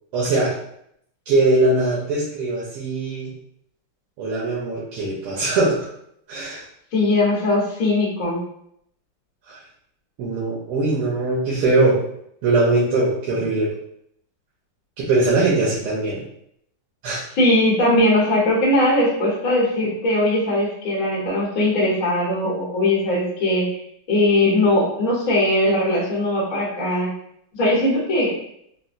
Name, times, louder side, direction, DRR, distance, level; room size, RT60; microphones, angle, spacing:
voice 1, 0.1-0.5 1.3-3.3 4.2-5.9 6.3-6.6 9.5-9.6 10.2-12.0 12.4-13.7 15.0-16.2 17.0-17.2, right 2 dB, 85° right, -6 dB, 1.6 m, -21 dB
voice 2, 6.9-8.4 17.3-23.7 24.1-27.1 27.5-28.3, left 1 dB, 55° left, -6 dB, 1.2 m, -19 dB
4.1 x 2.1 x 2.5 m, 0.72 s
omnidirectional pair, 2.4 m